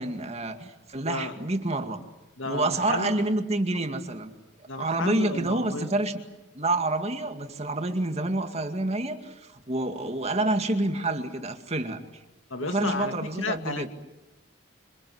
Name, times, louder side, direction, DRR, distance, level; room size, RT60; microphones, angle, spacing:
voice 1, 0.0-2.0 2.4-4.3 4.8-6.1 6.6-12.0 12.6-13.9, right 2 dB, 35° right, 6 dB, 2.2 m, -28 dB
voice 2, 2.4-3.2 4.7-5.9 12.5-13.9, left 3 dB, 75° left, 7 dB, 2.2 m, -32 dB
27.0 x 25.5 x 8.0 m, 0.98 s
head